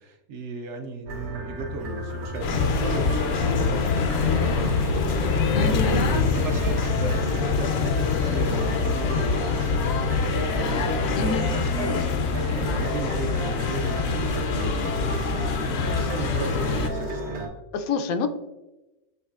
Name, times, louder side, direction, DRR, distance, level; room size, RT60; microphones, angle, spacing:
voice 1, 0.0-17.5, right 3 dB, 65° right, 4 dB, 0.8 m, -36 dB
sound 1, 1.1-17.5, right 1 dB, 85° right, 1.5 m, -33 dB
sound 2, 2.4-16.9, left 5 dB, 65° left, 0.6 m, -25 dB
voice 2, 5.5-6.1 11.2-11.5 15.4-15.8 17.7-18.3, left 4 dB, 80° left, 8 dB, 1.0 m, -28 dB
7.1 x 3.2 x 2.3 m, 1.0 s
omnidirectional pair, 1.5 m